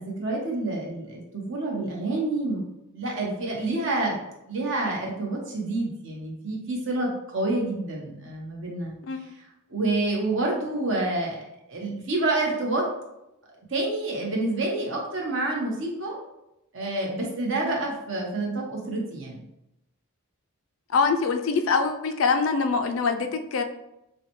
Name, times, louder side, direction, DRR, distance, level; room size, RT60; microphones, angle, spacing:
voice 1, 0.0-2.6 2.9-4.2 4.5-8.9 9.7-12.9 13.7-16.2 16.7-19.4, right 2 dB, 60° right, -2 dB, 1.1 m, -28 dB
voice 2, 9.0-9.3 20.9-23.6, left 5 dB, 65° left, 6 dB, 0.4 m, -24 dB
6.8 x 2.3 x 3.1 m, 0.87 s
head